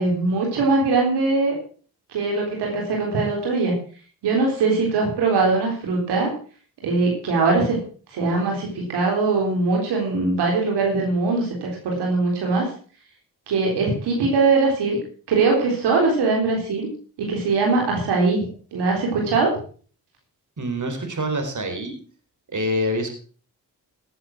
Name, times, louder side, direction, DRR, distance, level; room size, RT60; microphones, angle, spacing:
voice 1, 0.0-1.6 2.1-3.7 4.2-6.3 6.8-7.8 8.1-12.7 13.5-15.0 15.3-16.9 17.2-19.5, right 3 dB, 90° right, 0 dB, 3.9 m, -21 dB
voice 2, 20.6-22.0 22.5-23.1, equal, 50° right, 5 dB, 4.5 m, -26 dB
16.5 x 7.8 x 6.1 m, 0.42 s
supercardioid pair, 45°, 39 cm